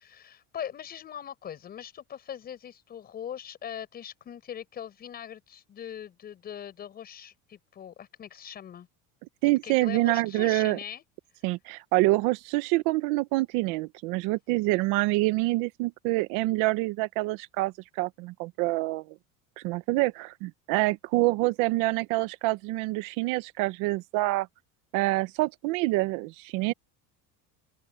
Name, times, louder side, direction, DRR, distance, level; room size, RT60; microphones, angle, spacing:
voice 1, 0.1-8.9 9.6-11.0, left 9 dB, 30° left, 6.8 m, -41 dB
voice 2, 9.4-10.8 11.4-19.2 19.6-24.5 24.9-26.7, right 20 dB, 70° right, 0.9 m, -26 dB
open air
cardioid pair, 180°, 33 cm